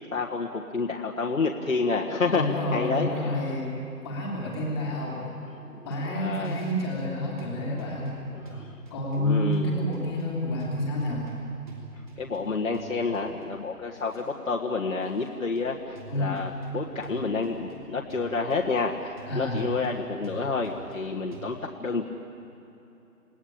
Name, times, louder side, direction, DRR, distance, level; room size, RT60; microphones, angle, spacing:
voice 1, 0.1-3.3 5.5-6.5 8.3-8.8 9.2-9.7 12.2-22.0, left 4 dB, 55° left, -2 dB, 1.8 m, -29 dB
voice 2, 2.3-3.7 4.0-5.3 5.8-8.1 8.9-11.2 16.1-16.4 19.3-19.6, left 1 dB, 5° left, -13 dB, 2.5 m, -29 dB
sound 1, 5.9-21.4, right 1 dB, 30° right, 3.3 m, -48 dB
29.0 x 18.0 x 8.8 m, 2.9 s
figure-of-eight pair, 160°, 47 cm